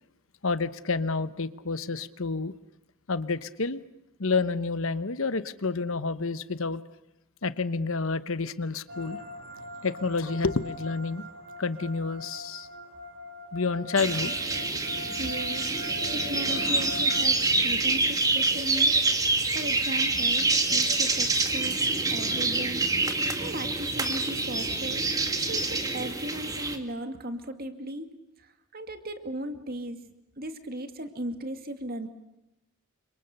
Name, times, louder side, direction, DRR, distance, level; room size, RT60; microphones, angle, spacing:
voice 1, 0.4-2.5 3.1-3.8 4.2-6.8 7.4-9.2 9.8-11.3 11.6-12.7 13.5-14.8, left 4 dB, 65° left, 14 dB, 1.0 m, -29 dB
sound 1, 8.9-17.2, left 1 dB, 60° right, 4.0 m, -42 dB
sound 2, 14.0-26.8, right 3 dB, 15° right, 2.0 m, -26 dB
voice 2, 15.2-15.8 16.1-19.0 19.5-28.1 28.4-32.1, right 1 dB, 40° right, 8 dB, 2.3 m, -37 dB
30.0 x 26.0 x 6.7 m, 0.88 s
head